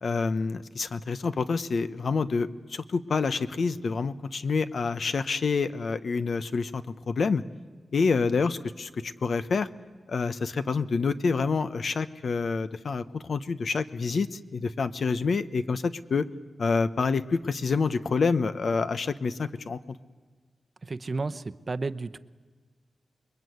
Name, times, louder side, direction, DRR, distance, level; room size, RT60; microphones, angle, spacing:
voice 1, 0.0-7.4 7.9-9.7 10.1-16.3 16.6-20.0, left 4 dB, 60° left, 13 dB, 1.0 m, -27 dB
voice 2, 20.8-22.2, right 3 dB, 35° right, 11 dB, 0.8 m, -32 dB
28.0 x 22.0 x 9.5 m, 1.4 s
wide cardioid pair, 135°, 0 cm